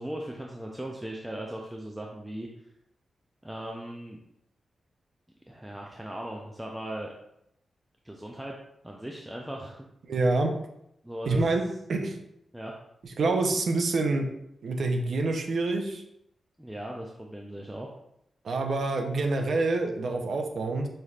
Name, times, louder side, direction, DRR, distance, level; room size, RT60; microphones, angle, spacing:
voice 1, 0.0-2.5 3.4-4.2 5.5-7.1 8.0-8.6 8.8-9.9 11.0-11.5 12.5-12.7 16.6-17.9, right 1 dB, 5° right, -1 dB, 0.4 m, -38 dB
voice 2, 10.1-10.5 11.3-11.6 11.9-12.2 13.2-14.3 14.6-16.0 18.4-20.9, right 3 dB, 65° right, 4 dB, 0.6 m, -26 dB
5.5 x 3.3 x 2.4 m, 0.78 s
wide cardioid pair, 110°, 0 cm